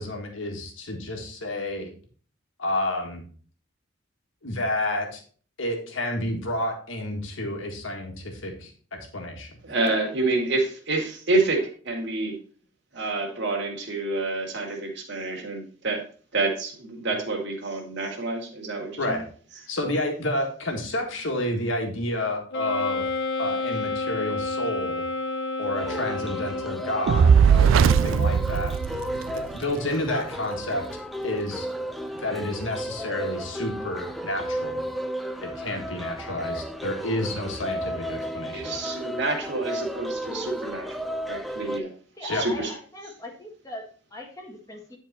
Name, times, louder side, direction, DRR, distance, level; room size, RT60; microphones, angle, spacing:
voice 1, 0.0-1.9 2.6-3.2 4.4-5.2 5.6-9.6 19.0-19.2 19.7-23.0 23.4-25.0 25.6-28.7 29.3-30.8 31.2-31.7 32.1-34.8 35.4-38.6 42.3-42.5, left 1 dB, 85° left, 2 dB, 1.8 m, -30 dB
voice 2, 9.6-12.4 12.9-16.0 16.3-19.2 38.5-40.9 41.3-41.9 42.2-42.7, right 2 dB, 60° right, 1 dB, 2.2 m, -28 dB
Wind instrument woodwind instrument, 22.5-27.2, left 3 dB, 60° left, 1.2 m, -30 dB
sound 1, 25.8-41.8, equal, ahead, 0.5 m, -34 dB
Fire, 27.1-29.5, right 7 dB, 85° right, 0.3 m, -18 dB
voice 3, 42.2-45.0, left 1 dB, 20° left, 1 dB, 1.6 m, -40 dB
10.5 x 4.6 x 4.2 m, 0.42 s
head